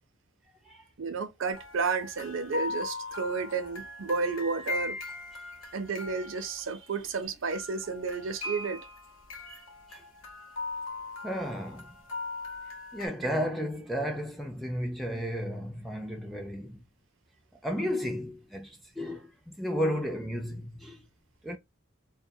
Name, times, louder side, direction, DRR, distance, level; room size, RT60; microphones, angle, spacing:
voice 1, 1.0-5.0 5.7-8.8 9.5-9.6, right 4 dB, 65° right, 0.5 m, -32 dB
sound 1, 1.5-7.2 7.5-13.1, left 3 dB, 70° left, 0.7 m, -40 dB
voice 2, 11.2-11.9 12.9-16.8 17.6-21.0 21.4-21.6, equal, ahead, 0.4 m, -33 dB
2.3 x 2.2 x 2.6 m
head